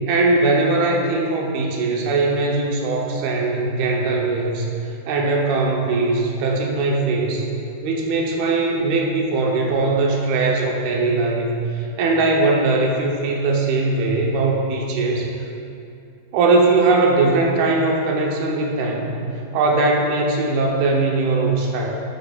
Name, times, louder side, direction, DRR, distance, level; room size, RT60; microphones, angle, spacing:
voice 1, 0.1-4.7 5.1-7.4 7.8-15.3 16.3-19.1 19.5-22.0, right 3 dB, 75° right, -1 dB, 2.7 m, -20 dB
12.0 x 10.0 x 2.4 m, 2.5 s
omnidirectional pair, 4.7 m